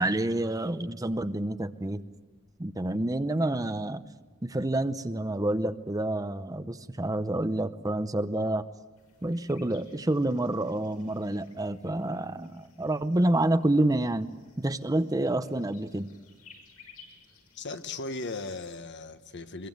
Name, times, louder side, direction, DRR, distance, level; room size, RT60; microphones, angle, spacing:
voice 1, 0.0-2.0 2.6-4.0 4.4-8.6 9.2-14.3 14.6-16.1, right 1 dB, 15° right, 11 dB, 0.7 m, -28 dB
sound 1, 9.0-18.8, left 5 dB, 85° left, 6.6 m, -58 dB
voice 2, 17.6-19.7, left 3 dB, 55° left, 9 dB, 1.3 m, -37 dB
24.5 x 22.5 x 7.9 m, 1.3 s
head